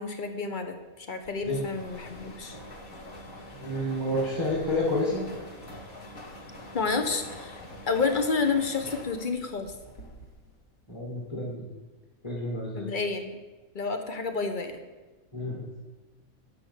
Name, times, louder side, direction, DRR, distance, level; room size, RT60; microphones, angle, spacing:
voice 1, 0.0-2.6 6.7-9.7 12.7-13.4 13.7-14.8, left 4 dB, 35° left, 6 dB, 1.3 m, -30 dB
sound 1, 1.2-10.6, left 1 dB, 75° left, 2.6 m, -45 dB
voice 2, 3.5-5.2 10.9-11.6 12.2-12.9 15.3-15.6, left 1 dB, 20° left, -5 dB, 2.2 m, -29 dB
11.5 x 6.3 x 8.5 m, 1.2 s
omnidirectional pair, 1.5 m